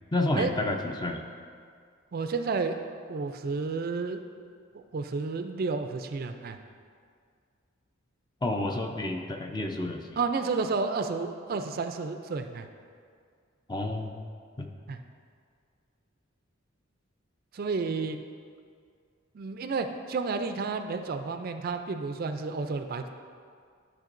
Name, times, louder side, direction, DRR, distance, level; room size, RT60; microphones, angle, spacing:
voice 1, 0.1-1.2 8.4-10.2 13.7-14.1 14.6-14.7, left 2 dB, 20° left, 3 dB, 0.5 m, -30 dB
voice 2, 2.1-2.8 3.1-4.2 4.7-6.6 10.2-12.7 14.9-15.0 17.5-18.2 19.3-23.0, right 4 dB, 45° right, 7 dB, 0.4 m, -31 dB
12.0 x 6.0 x 2.5 m, 2.1 s
head